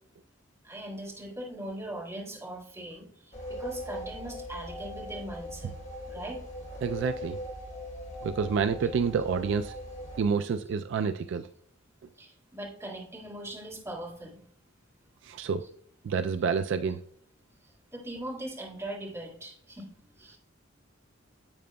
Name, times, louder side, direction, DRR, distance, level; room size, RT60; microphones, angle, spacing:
voice 1, 0.6-5.7 6.1-6.4 12.2-14.4 15.6-15.7 17.6-20.4, right 1 dB, 15° right, -3 dB, 1.9 m, -40 dB
sound 1, 3.3-10.2, equal, 40° left, 3.3 m, -40 dB
voice 2, 6.8-7.4 8.2-9.7 10.2-11.5 15.2-15.7 16.0-17.0, right 6 dB, 65° right, 10 dB, 0.3 m, -28 dB
10.0 x 7.7 x 2.2 m, 0.63 s
head